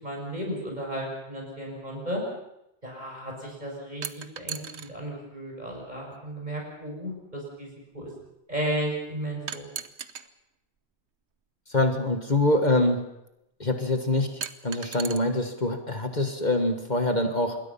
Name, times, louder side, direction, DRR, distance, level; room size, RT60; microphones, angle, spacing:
voice 1, 0.0-2.2 2.8-4.6 4.9-8.1 8.5-9.7, right 1 dB, 40° right, -1 dB, 7.0 m, -34 dB
sound 1, 4.0-4.9 6.1-6.2 9.5-10.3 11.7-11.8 14.4-15.2, right 7 dB, 80° right, 1.3 m, -36 dB
voice 2, 11.7-13.0 13.6-14.3 14.6-17.6, left 2 dB, 40° left, 6 dB, 1.8 m, -24 dB
27.0 x 21.5 x 5.7 m, 0.85 s
omnidirectional pair, 1.1 m